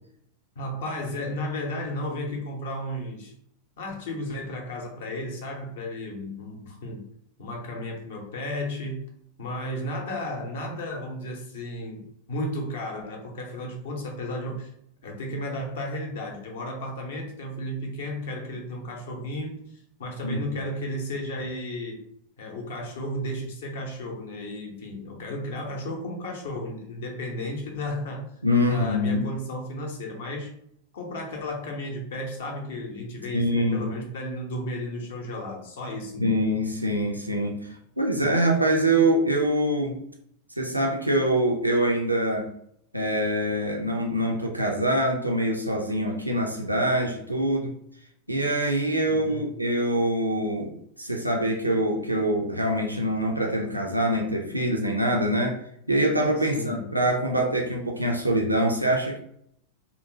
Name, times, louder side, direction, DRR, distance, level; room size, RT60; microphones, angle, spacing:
voice 1, 0.6-3.3 3.8-7.0 7.4-9.0 9.4-14.7 15.0-22.0 22.4-28.3 28.6-30.5 30.9-36.3 49.1-49.5 56.4-56.9, left 1 dB, 60° left, 1 dB, 0.6 m, -34 dB
voice 2, 28.4-29.3 33.3-33.9 36.2-40.0 40.6-42.5 42.9-47.7 48.3-50.7 51.0-55.6 55.9-59.2, right 1 dB, 85° right, 0 dB, 0.3 m, -24 dB
2.8 x 2.0 x 2.6 m, 0.71 s
figure-of-eight pair, 90°, 0 cm